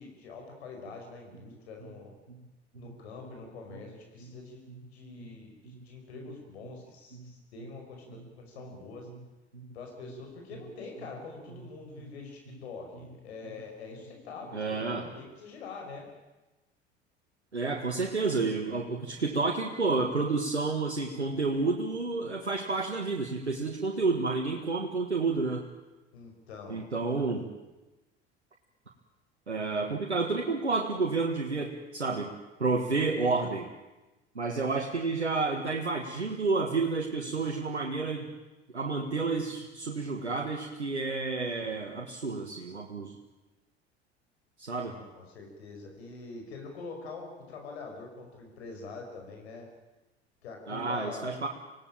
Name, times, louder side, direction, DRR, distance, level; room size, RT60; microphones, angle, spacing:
voice 1, 0.0-2.1 2.8-4.6 4.9-9.1 9.7-16.1 26.1-26.8 44.9-49.7 50.4-51.5, left 4 dB, 70° left, 2 dB, 5.7 m, -44 dB
voice 2, 14.5-15.1 17.5-25.6 26.7-27.5 29.5-32.3 32.6-33.7 34.3-38.3 38.7-43.1 44.6-45.0 50.7-51.5, right 3 dB, 90° right, 1 dB, 1.8 m, -30 dB
26.0 x 17.5 x 8.9 m, 1.1 s
figure-of-eight pair, 70°, 33 cm